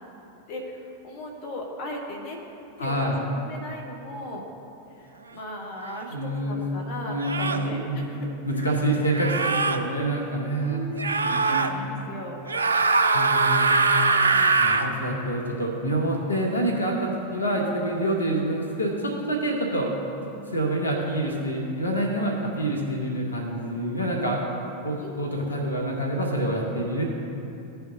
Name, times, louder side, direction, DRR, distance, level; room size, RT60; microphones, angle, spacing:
voice 1, 0.5-2.4 2.8-4.4 5.0-8.7 9.8-10.0 10.5-12.4 14.1-14.5 18.3-18.4 25.0-25.2, equal, 45° left, 1 dB, 1.1 m, -38 dB
voice 2, 2.8-3.2 6.1-6.6 7.1-8.2 8.5-11.9 13.1-13.9 14.6-19.9 20.2-24.5 24.8-27.0, right 1 dB, 80° left, -1 dB, 1.1 m, -27 dB
sound 1, 5.8-6.0 7.2-7.7 9.1-9.8 11.0-11.7 12.5-14.9, right 3 dB, 75° right, 0.4 m, -22 dB
15.0 x 5.7 x 2.7 m, 2.8 s
figure-of-eight pair, 90°, 0 cm